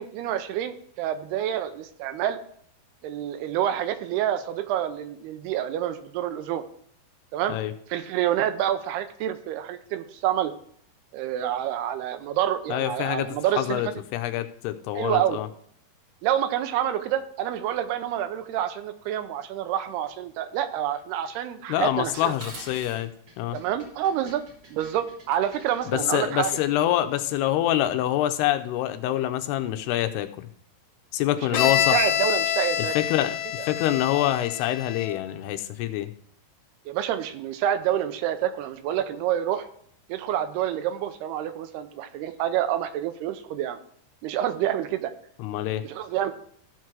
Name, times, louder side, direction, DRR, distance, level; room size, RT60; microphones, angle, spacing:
voice 1, 0.0-2.4 3.0-6.6 7.3-7.6 7.9-10.5 11.1-13.8 14.9-15.4 16.2-22.3 23.5-24.4 24.7-26.6 31.6-33.0 36.9-39.7 40.1-43.8 44.2-45.1 45.8-46.3, right 11 dB, 85° right, 10 dB, 2.7 m, -28 dB
voice 2, 12.7-15.5 21.7-23.6 25.9-30.5 31.1-32.1 32.8-36.1 45.4-45.8, left 13 dB, 90° left, 9 dB, 2.7 m, -26 dB
Dishes pots and pans, 22.1-26.8, right 2 dB, 35° right, 1.9 m, -47 dB
Bowed string instrument, 31.5-35.3, left 10 dB, 70° left, 2.7 m, -26 dB
14.0 x 4.7 x 6.1 m, 0.63 s
omnidirectional pair, 4.7 m